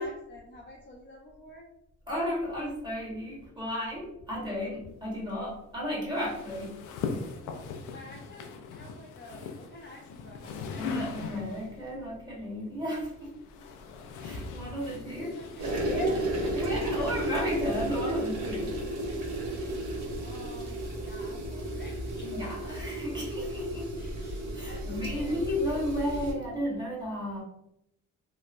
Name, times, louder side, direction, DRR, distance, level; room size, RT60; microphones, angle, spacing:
voice 1, 0.0-1.7 7.8-11.7 14.6-16.2 20.2-22.8 24.0-25.9, left 1 dB, 35° left, -2 dB, 0.6 m, -47 dB
voice 2, 2.1-6.8 10.8-13.3 14.2-15.3 16.5-18.7 22.2-23.9 24.5-27.4, equal, 15° right, -5 dB, 1.4 m, -33 dB
sound 1, 6.1-11.8 12.8-16.4, left 4 dB, 85° left, 0.5 m, -39 dB
sound 2, 15.6-26.3, right 1 dB, 75° right, 1.1 m, -33 dB
2.9 x 2.2 x 2.5 m, 0.82 s
cardioid pair, 90°, 30 cm